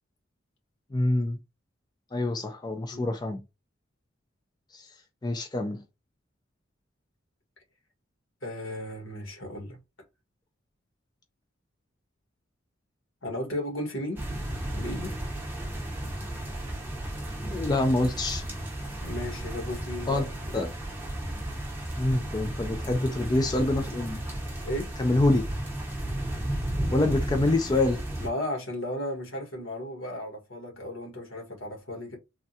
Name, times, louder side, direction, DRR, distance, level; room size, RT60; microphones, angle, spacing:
voice 1, 0.9-1.4 2.1-3.4 4.7-4.9 5.2-5.8 17.5-18.4 20.1-20.7 21.9-24.2 25.0-25.5 26.9-28.0, left 2 dB, 20° left, 0.4 m, -26 dB
voice 2, 8.4-9.8 13.2-14.2 14.8-15.1 19.0-20.5 24.6-24.9 28.2-32.2, left 1 dB, 75° left, 1.4 m, -35 dB
sound 1, 14.2-28.3, right 1 dB, 10° right, 0.8 m, -34 dB
3.5 x 2.2 x 2.6 m
head